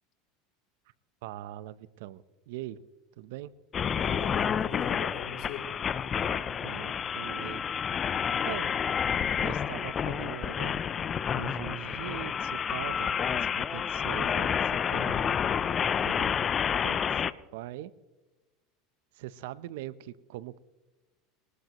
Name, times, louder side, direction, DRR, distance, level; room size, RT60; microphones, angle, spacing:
voice 1, 1.2-2.8 3.2-3.5 6.6-7.6 8.5-8.7 9.4-10.8 11.3-15.1 16.0-16.4 16.8-17.9 19.1-20.6, right 14 dB, 75° right, 17 dB, 0.8 m, -41 dB
sound 1, 3.7-17.3, left 7 dB, 30° left, 0.5 m, -29 dB
voice 2, 4.0-6.4 8.1-8.7 14.9-15.4, left 6 dB, 60° left, 2 dB, 3.7 m, -41 dB
21.5 x 19.5 x 3.1 m, 1.1 s
supercardioid pair, 130°, 0 cm